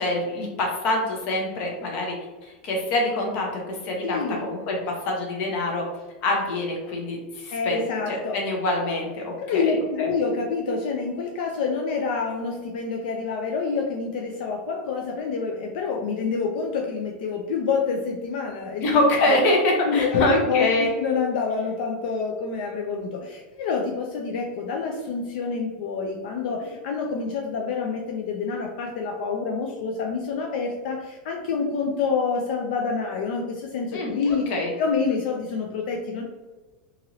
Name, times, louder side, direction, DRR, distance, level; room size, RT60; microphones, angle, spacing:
voice 1, 0.0-2.1 2.4-5.8 6.2-10.1 18.8-21.0 33.9-34.7, left 1 dB, 35° left, -1 dB, 0.7 m, -25 dB
voice 2, 4.0-4.5 7.5-8.4 9.4-19.0 19.3-19.4 19.8-34.5 34.8-36.2, left 5 dB, 60° left, 1 dB, 0.4 m, -27 dB
2.7 x 2.5 x 2.9 m, 1.2 s
supercardioid pair, 175°, 5 cm